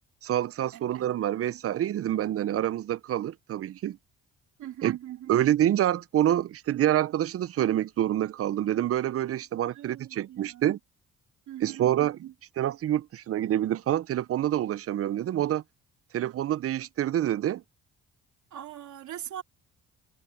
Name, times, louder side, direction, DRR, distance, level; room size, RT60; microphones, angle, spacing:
voice 1, 0.2-4.0 4.8-10.8 11.6-12.2 12.6-15.6 16.1-17.6, right 12 dB, 50° right, 0.5 m, -27 dB
voice 2, 4.6-5.4 9.7-10.7 11.5-12.3 18.5-19.4, right 11 dB, 75° right, 3.1 m, -42 dB
cardioid pair, 90°, 30 cm